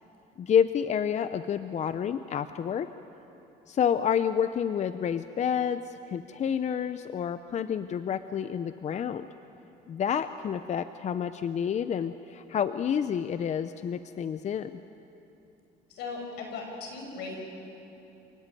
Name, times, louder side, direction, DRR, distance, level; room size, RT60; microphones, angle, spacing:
voice 1, 0.4-2.9 3.7-9.3 9.9-14.8, left 8 dB, 45° left, 12 dB, 0.7 m, -29 dB
voice 2, 15.9-17.4, left 4 dB, 85° left, 1 dB, 6.1 m, -38 dB
28.0 x 18.5 x 9.2 m, 3.0 s
cardioid pair, 110°, 17 cm